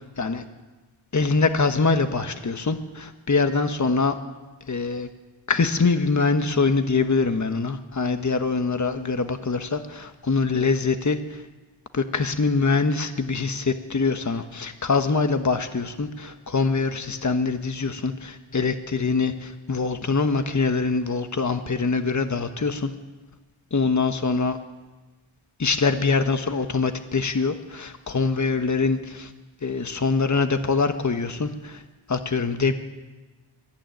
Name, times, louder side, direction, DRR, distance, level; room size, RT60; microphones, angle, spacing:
voice 1, 1.1-4.1 4.7-5.1 5.5-11.4 11.9-22.9 23.7-24.6 25.6-29.3 29.6-31.8 32.1-32.7, left 4 dB, 35° left, 8 dB, 1.4 m, -24 dB
22.5 x 15.0 x 9.3 m, 1.2 s
wide cardioid pair, 85°, 49 cm